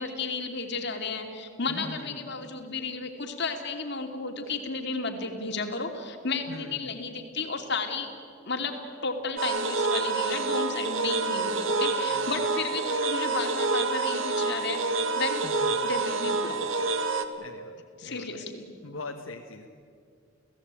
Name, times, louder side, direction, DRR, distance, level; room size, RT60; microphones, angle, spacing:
voice 1, 0.0-8.1 8.5-15.4 15.8-16.9 18.0-18.7, left 4 dB, 60° left, 4 dB, 2.8 m, -33 dB
voice 2, 1.7-2.3 6.5-7.0 12.1-12.5 15.4-15.8 17.4-18.4 18.8-19.7, left 3 dB, 90° left, 2 dB, 1.4 m, -42 dB
sound 1, 9.4-17.2, right 3 dB, 75° right, 1.6 m, -27 dB
29.5 x 16.5 x 9.0 m, 2.3 s
head